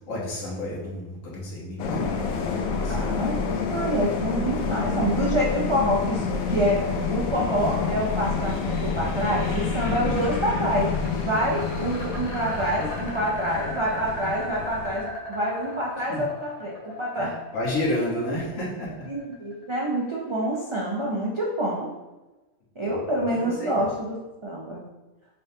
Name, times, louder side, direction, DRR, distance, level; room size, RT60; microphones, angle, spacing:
voice 1, 0.1-3.1 16.1-16.2 17.2-18.9 22.8-23.8, left 1 dB, 70° left, -5 dB, 1.6 m, -31 dB
sound 1, 1.8-15.0, left 5 dB, 85° left, 1.0 m, -28 dB
voice 2, 2.9-17.4 19.1-21.9 22.8-24.8, right 1 dB, 50° right, -4 dB, 0.3 m, -27 dB
sound 2, 8.3-20.1, left 1 dB, 25° left, 1.2 m, -38 dB
5.2 x 3.4 x 2.7 m, 1.1 s
omnidirectional pair, 1.4 m